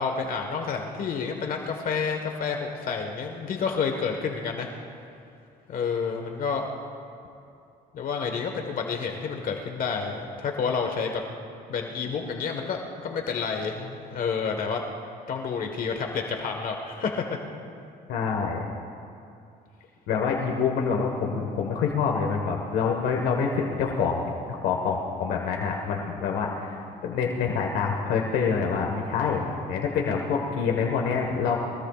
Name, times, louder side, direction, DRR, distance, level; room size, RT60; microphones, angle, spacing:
voice 1, 0.0-4.7 5.7-6.7 7.9-11.2 11.7-14.8 15.3-17.4, left 5 dB, 55° left, 3 dB, 1.5 m, -29 dB
voice 2, 18.1-18.7 20.1-24.2 24.5-31.6, left 5 dB, 85° left, 0 dB, 1.5 m, -26 dB
23.5 x 18.5 x 2.5 m, 2.5 s
cardioid pair, 110°, 17 cm